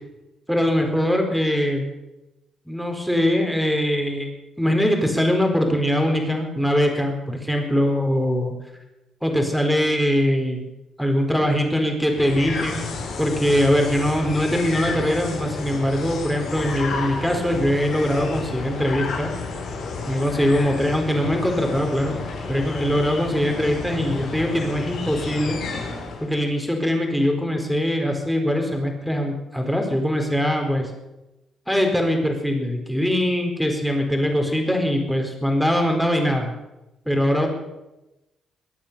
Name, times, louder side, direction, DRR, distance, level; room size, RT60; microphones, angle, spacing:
voice 1, 0.5-1.9 2.7-4.3 4.6-8.5 9.2-10.7 11.0-12.9 13.2-19.3 20.1-22.1 22.5-25.6 26.2-30.9 31.7-36.5 37.1-37.5, equal, ahead, 2 dB, 4.3 m, -22 dB
sound 1, 12.1-26.3, left 4 dB, 65° left, 4.9 m, -31 dB
22.5 x 8.6 x 6.8 m, 0.96 s
cardioid pair, 90°, 0 cm